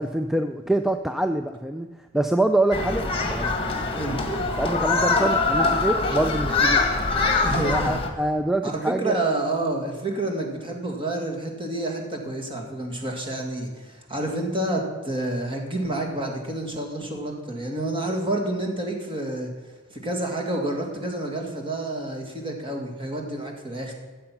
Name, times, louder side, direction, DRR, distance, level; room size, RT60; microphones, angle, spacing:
voice 1, 0.0-1.9 2.1-3.5 4.1-4.2 4.6-6.8 7.7-9.2, right 1 dB, ahead, 7 dB, 0.4 m, -25 dB
Human group actions, 2.7-8.1, left 3 dB, 25° left, 1.6 m, -23 dB
voice 2, 3.9-4.3 7.4-8.0 8.6-19.5 19.9-23.9, right 1 dB, 25° right, 2 dB, 2.1 m, -29 dB
14.0 x 7.8 x 5.9 m, 1.3 s
head